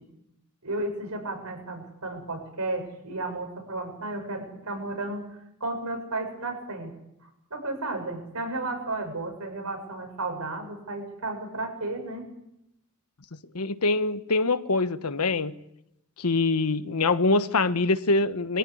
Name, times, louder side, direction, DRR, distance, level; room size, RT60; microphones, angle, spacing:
voice 1, 0.6-5.2 5.6-6.9 7.5-12.3, right 2 dB, 80° right, 7.2 m, -33 dB
voice 2, 13.5-15.5 16.2-18.6, left 3 dB, 85° left, 1.2 m, -24 dB
24.0 x 15.0 x 9.9 m
head